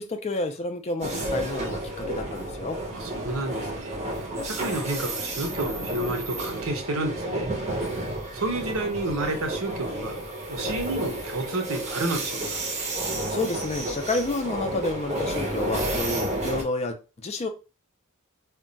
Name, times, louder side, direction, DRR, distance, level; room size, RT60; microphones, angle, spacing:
voice 1, 0.0-2.8 13.3-17.5, left 2 dB, 30° left, 0.4 m, -30 dB
sound 1, 1.0-16.6, right 1 dB, 30° right, 0.6 m, -31 dB
voice 2, 2.9-4.0 4.4-7.5 8.3-10.2 10.5-12.6, right 2 dB, 65° right, 0.7 m, -30 dB
2.3 x 2.2 x 3.8 m
head